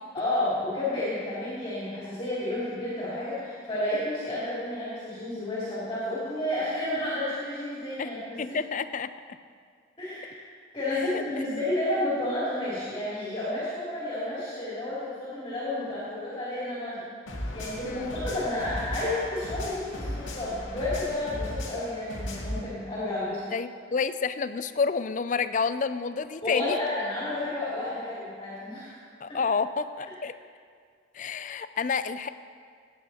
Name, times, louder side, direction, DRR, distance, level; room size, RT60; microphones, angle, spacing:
voice 1, 0.1-8.6 10.0-10.4 10.7-17.0 17.5-23.4 26.4-29.0 29.3-29.4, left 1 dB, 25° left, -10 dB, 3.3 m, -31 dB
voice 2, 8.4-9.1 11.1-11.2 17.8-18.1 23.5-26.8 29.2-30.3 31.1-32.3, left 5 dB, 40° left, 13 dB, 0.4 m, -29 dB
sound 1, 17.3-22.6, left 1 dB, 80° left, 2.1 m, -36 dB
18.5 x 9.0 x 4.3 m, 2.1 s
head